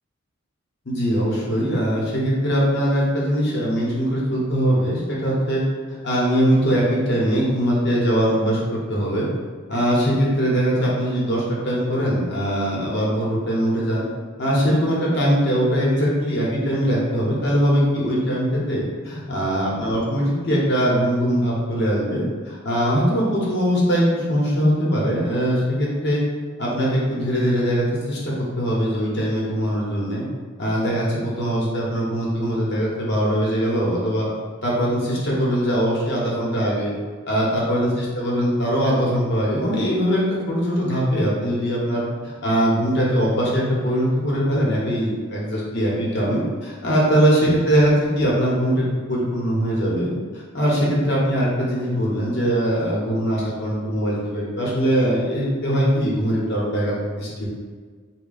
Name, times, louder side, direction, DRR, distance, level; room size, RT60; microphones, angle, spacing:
voice 1, 0.8-5.6 5.9-9.3 9.7-14.0 14.4-26.2 26.6-30.2 30.6-34.3 34.6-36.9 37.3-50.1 50.5-57.5, equal, 55° left, -5 dB, 1.0 m, -21 dB
3.4 x 2.2 x 3.9 m, 1.6 s
head